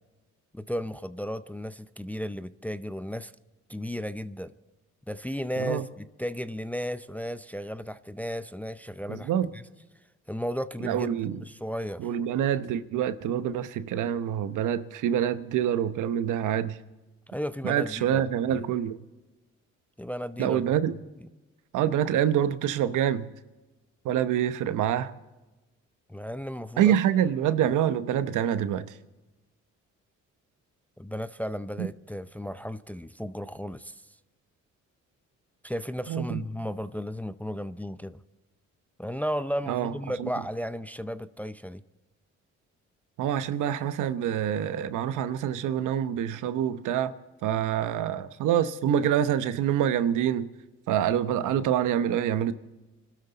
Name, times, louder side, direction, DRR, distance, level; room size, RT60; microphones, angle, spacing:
voice 1, 0.5-3.3 3.7-4.5 5.1-9.6 10.3-12.1 17.3-18.7 20.0-20.6 26.1-27.0 31.0-34.0 35.6-38.2 39.0-41.8, equal, 5° left, 0.5 m, -34 dB
voice 2, 9.1-9.5 10.8-11.4 12.0-16.8 17.6-19.0 20.4-20.9 21.7-23.3 24.0-25.1 26.8-28.8 31.8-31.9 36.1-36.4 39.7-39.9 40.2-40.3 43.2-47.1 47.4-50.5 50.9-52.5, right 10 dB, 85° right, 0.9 m, -26 dB
25.5 x 12.5 x 4.0 m
cardioid pair, 90°, 30 cm